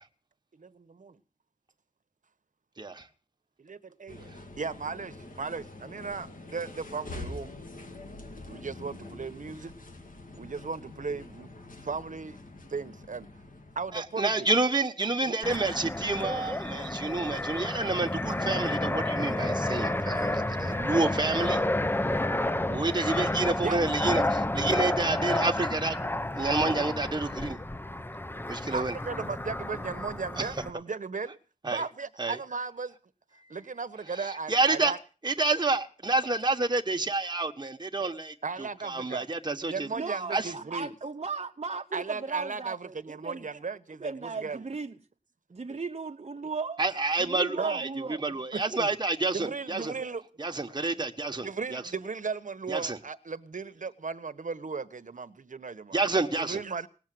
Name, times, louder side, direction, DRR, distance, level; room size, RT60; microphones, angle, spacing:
voice 1, 0.5-1.2 3.6-4.3 4.6-7.5 8.5-9.7 10.4-11.5 11.8-12.4 12.7-13.3 13.8-14.5 15.2-15.3 17.9-18.1 23.6-23.8 28.7-31.4 31.6-32.9 33.5-35.0 38.0-38.1 38.4-39.3 39.7-40.9 41.9-44.6 45.7-45.8 47.6-47.8 48.5-48.9 49.3-50.2 50.5-50.7 51.1-56.0 56.4-56.9, right 4 dB, 75° right, 1.1 m, -36 dB
sound 1, 4.1-14.3, left 2 dB, 90° left, 2.2 m, -45 dB
voice 2, 13.9-21.6 22.7-26.0 26.4-27.6 28.5-28.9 30.4-30.5 31.6-31.8 32.2-32.4 34.1-34.9 35.2-38.3 38.8-39.9 40.3-40.5 46.8-49.9 50.4-51.8 52.7-53.0 55.9-56.6, right 3 dB, 30° right, 1.3 m, -29 dB
Fixed-wing aircraft airplane, 15.4-30.7, left 1 dB, 15° left, 0.7 m, -30 dB
voice 3, 39.9-43.5 44.0-44.9 45.5-46.8 47.2-48.4, right 4 dB, 50° right, 1.0 m, -36 dB
19.0 x 7.4 x 9.2 m
wide cardioid pair, 65°, 14 cm